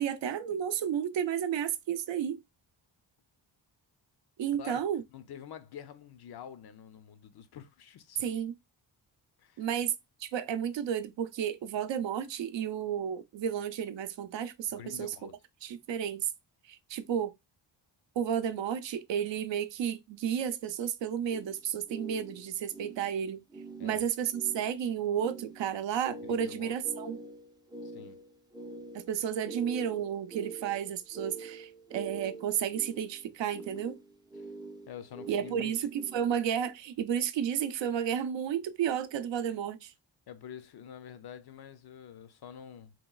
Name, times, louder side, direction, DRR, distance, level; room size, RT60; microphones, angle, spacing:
voice 1, 0.0-2.4 4.4-5.0 8.2-8.5 9.6-9.9 10.2-15.1 15.6-16.3 16.7-17.3 18.2-23.4 23.8-27.2 28.9-34.0 35.3-39.9, right 9 dB, 75° right, 0.5 m, -32 dB
voice 2, 5.1-8.2 9.4-9.7 14.7-15.4 23.8-24.0 26.2-26.8 27.8-28.2 34.4-34.5 34.9-35.9 40.3-42.9, left 9 dB, 60° left, 0.5 m, -47 dB
sound 1, 21.3-36.6, right 3 dB, 10° right, 0.4 m, -46 dB
3.0 x 2.9 x 2.2 m
cardioid pair, 95°, 45 cm